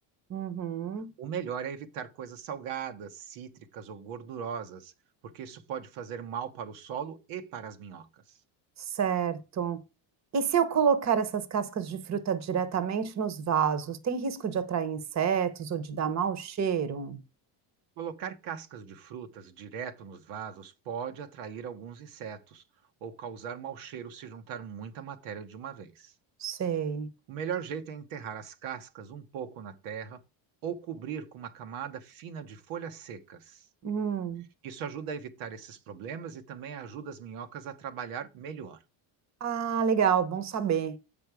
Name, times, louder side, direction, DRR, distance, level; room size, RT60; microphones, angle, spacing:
voice 1, 0.3-1.1 8.8-9.8 10.3-17.2 26.4-27.1 33.8-34.4 39.4-41.0, right 7 dB, 35° right, 1.0 m, -28 dB
voice 2, 1.2-4.9 5.2-8.4 18.0-22.6 23.0-26.1 27.3-30.2 30.6-33.7 34.6-38.8, right 7 dB, 80° right, 1.1 m, -39 dB
7.7 x 5.4 x 4.8 m
cardioid pair, 120°, 49 cm